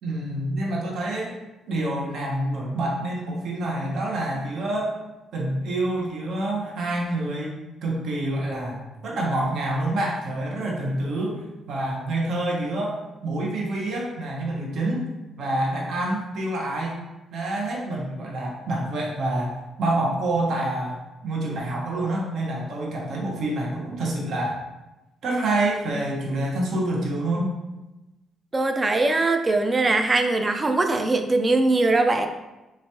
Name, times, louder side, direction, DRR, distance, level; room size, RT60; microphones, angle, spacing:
voice 1, 0.0-1.3 1.7-5.0 5.3-15.1 15.4-17.0 17.3-24.6 25.2-27.5, right 1 dB, 70° right, -2 dB, 0.9 m, -27 dB
voice 2, 28.5-32.3, right 2 dB, 25° right, 6 dB, 0.4 m, -21 dB
3.3 x 3.0 x 2.8 m, 1.0 s
cardioid pair, 90°, 0 cm